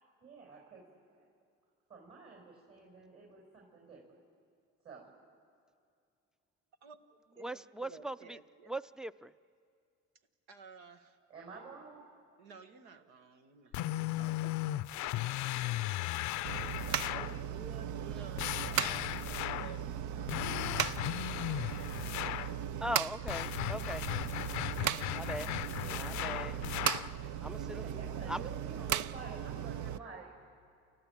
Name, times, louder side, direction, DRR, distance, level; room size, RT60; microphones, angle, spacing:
voice 1, 0.2-0.8 1.1-1.3 1.9-4.0 4.8-5.1 11.3-12.0 14.2-14.5 15.4-15.8 16.9-17.2 18.8-18.9 20.7-21.5 27.6-30.3, right 4 dB, 45° right, -2 dB, 5.8 m, -50 dB
voice 2, 6.8-8.7 10.5-11.2 12.4-15.1 16.0-16.1 16.6-21.1 24.8-26.5 27.2-27.3, right 4 dB, 85° right, 7 dB, 1.4 m, -54 dB
voice 3, 7.4-8.4 8.7-9.3 22.8-24.2 25.1-25.5 25.9-26.6 27.4-27.8 28.3-28.4, right 1 dB, ahead, 16 dB, 0.5 m, -40 dB
sound 1, 13.7-17.4 18.4-19.8 20.3-22.6 23.3-27.1, left 16 dB, 65° left, 0.5 m, -36 dB
sound 2, 16.4-30.0, right 10 dB, 65° right, 0.6 m, -37 dB
29.5 x 14.0 x 8.8 m, 2.3 s
supercardioid pair, 65°, 32 cm